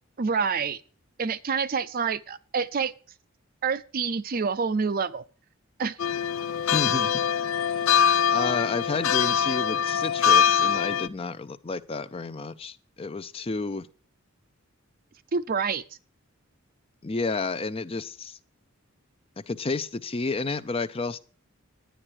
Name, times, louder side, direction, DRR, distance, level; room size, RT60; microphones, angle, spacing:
voice 1, 0.2-0.8 1.2-2.9 3.6-5.2 5.8-6.0 15.3-15.8, right 5 dB, 45° right, 0.5 m, -27 dB
sound 1, 6.0-11.1, left 8 dB, 75° left, 0.5 m, -23 dB
voice 2, 6.7-7.2 8.3-13.9 17.0-18.4 19.5-21.2, left 3 dB, 30° left, 0.5 m, -31 dB
10.5 x 9.9 x 4.7 m
head